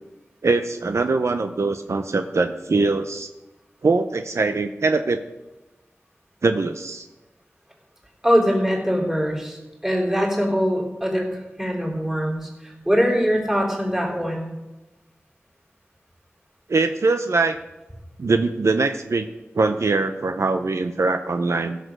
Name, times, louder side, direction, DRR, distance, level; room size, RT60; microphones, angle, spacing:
voice 1, 0.4-3.3 3.8-5.2 6.4-7.1 16.7-17.6 18.2-19.3 19.5-21.8, right 3 dB, 70° right, 7 dB, 0.6 m, -22 dB
voice 2, 8.2-14.5, equal, 10° right, -1 dB, 4.1 m, -22 dB
15.5 x 6.7 x 6.4 m, 1.1 s
wide cardioid pair, 65°, 5 cm